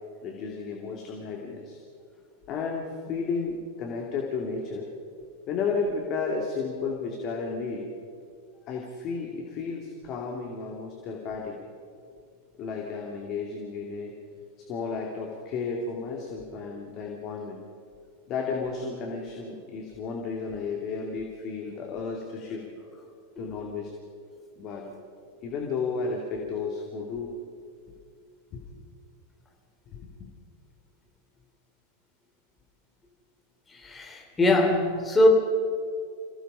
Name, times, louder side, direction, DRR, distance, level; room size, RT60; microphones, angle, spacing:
voice 1, 0.2-1.8 2.5-4.9 5.5-7.9 8.7-11.6 12.6-14.1 14.6-17.6 18.3-22.6 23.4-23.9 24.6-24.9 25.4-27.3 28.5-28.7 29.9-30.3, left 4 dB, 35° left, 0 dB, 2.6 m, -33 dB
voice 2, 33.8-35.3, left 1 dB, 15° left, 1 dB, 3.4 m, -22 dB
28.0 x 17.0 x 5.6 m, 2.3 s
figure-of-eight pair, 90°, 0 cm